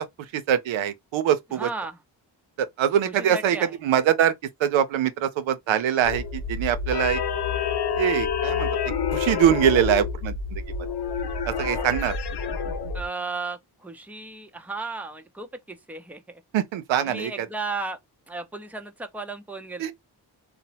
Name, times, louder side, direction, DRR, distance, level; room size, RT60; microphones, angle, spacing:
voice 1, 0.3-1.7 2.6-3.6 3.8-4.3 4.6-7.2 8.0-8.7 9.1-10.6 11.5-12.2 16.5-17.5 19.8-19.9, right 10 dB, 80° right, 0.5 m, -23 dB
voice 2, 1.5-2.0 3.0-3.8 12.9-16.4 17.0-18.0 18.3-19.9, right 3 dB, 5° right, 0.5 m, -35 dB
sound 1, 6.0-13.1, left 6 dB, 60° left, 0.7 m, -28 dB
2.8 x 2.0 x 2.8 m
cardioid pair, 50°, 46 cm